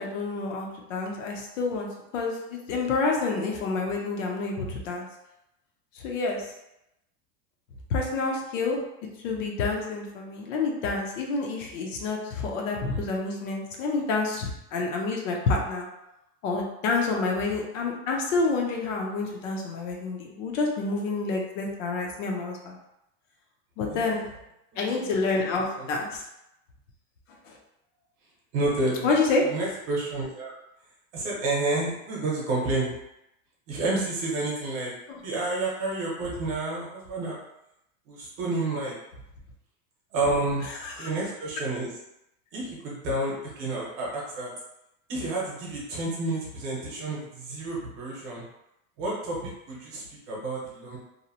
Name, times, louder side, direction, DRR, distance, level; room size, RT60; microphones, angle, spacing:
voice 1, 0.0-1.9 2.1-5.1 5.9-6.5 7.9-8.8 9.2-15.9 16.4-22.8 23.8-24.3 24.8-26.2 27.4-27.6 29.0-29.5 35.1-35.2 40.8-41.1, left 3 dB, 60° left, 0 dB, 0.6 m, -28 dB
voice 2, 23.9-24.2 24.7-25.1 25.4-25.9 28.5-29.1 29.4-30.5 31.1-32.9 33.7-34.9 35.2-37.4 38.1-38.9 40.1-40.7 41.0-41.9 42.5-44.5 45.1-48.4 49.0-51.0, right 2 dB, 40° right, -4 dB, 0.8 m, -30 dB
2.8 x 2.0 x 2.7 m, 0.85 s
supercardioid pair, 175°, 43 cm